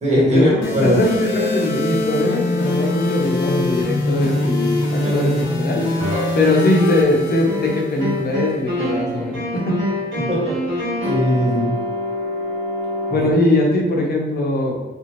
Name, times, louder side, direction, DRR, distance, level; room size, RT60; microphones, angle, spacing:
voice 1, 0.0-1.0 5.0-5.3 10.1-10.6 11.0-11.8, equal, 35° right, -5 dB, 1.2 m, -19 dB
sound 1, 0.6-8.6, left 1 dB, 80° left, 0.8 m, -23 dB
voice 2, 0.8-5.9 6.3-9.8 13.1-14.7, left 2 dB, 55° left, -1 dB, 0.7 m, -20 dB
sound 2, 6.0-7.2 7.4-13.3, left 1 dB, 90° right, 1.4 m, -26 dB
3.4 x 2.5 x 3.0 m, 1.2 s
wide cardioid pair, 150°, 19 cm